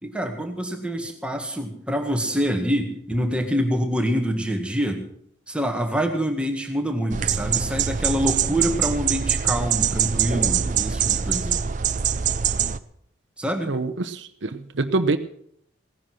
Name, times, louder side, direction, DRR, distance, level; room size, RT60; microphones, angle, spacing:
voice 1, 0.0-5.0 5.5-11.6 13.4-13.7, equal, 5° right, 4 dB, 1.7 m, -26 dB
sound 1, 7.1-12.8, right 8 dB, 40° right, 0.5 m, -23 dB
voice 2, 13.7-15.2, right 3 dB, 75° right, 8 dB, 0.9 m, -25 dB
17.0 x 10.5 x 6.3 m, 0.66 s
head